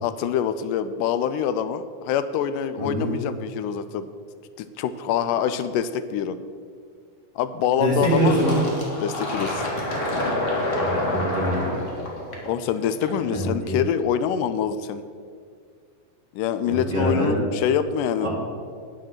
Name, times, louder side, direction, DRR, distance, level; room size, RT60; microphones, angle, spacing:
voice 1, 0.0-4.1 4.6-6.4 7.4-8.4 9.0-9.7 12.4-15.0 16.3-18.3, left 8 dB, 85° left, 12 dB, 2.1 m, -25 dB
voice 2, 2.8-3.1 7.8-8.6 10.8-11.7 13.3-13.8 16.7-17.3 18.2-18.3, right 1 dB, 35° right, -5 dB, 2.7 m, -24 dB
Fill (with liquid), 8.0-13.4, left 1 dB, 30° left, 1.5 m, -28 dB
9.8 x 7.6 x 6.5 m, 2.1 s
omnidirectional pair, 3.7 m